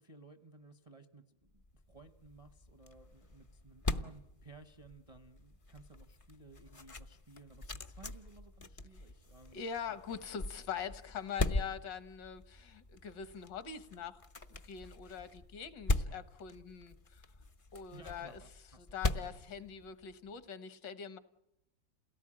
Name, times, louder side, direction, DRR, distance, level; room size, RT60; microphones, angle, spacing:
voice 1, 0.0-10.0 17.9-19.0 19.3-19.4, right 3 dB, 35° right, 8 dB, 0.6 m, -57 dB
sound 1, 1.5-20.3, left 2 dB, 50° left, 0.4 m, -41 dB
voice 2, 9.5-14.2 14.5-17.2 17.7-18.3 18.8-21.2, left 7 dB, 70° left, 12 dB, 1.7 m, -43 dB
28.0 x 17.5 x 8.7 m, 0.93 s
omnidirectional pair, 2.0 m